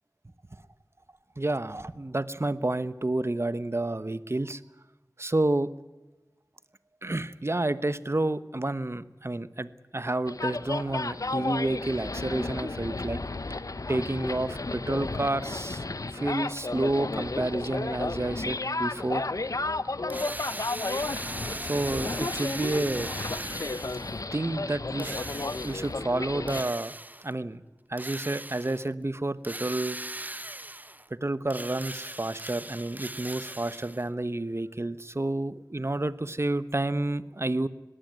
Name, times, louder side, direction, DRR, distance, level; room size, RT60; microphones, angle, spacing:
voice 1, 1.4-4.6 5.2-5.7 7.0-13.2 13.9-15.9 16.1-19.2 21.6-23.3 24.3-25.2 25.6-26.9 27.2-27.6 27.9-30.0 31.1-37.7, right 2 dB, 45° right, 14 dB, 1.0 m, -30 dB
sound 1, 10.3-26.7, left 3 dB, 60° left, 0.7 m, -33 dB
Drill, 20.1-24.2 25.0-25.9 26.5-27.3 28.0-28.9 29.4-31.1 31.5-34.1, right 1 dB, 25° right, 0.7 m, -39 dB
20.5 x 16.5 x 9.3 m, 1.1 s
wide cardioid pair, 45°, 6 cm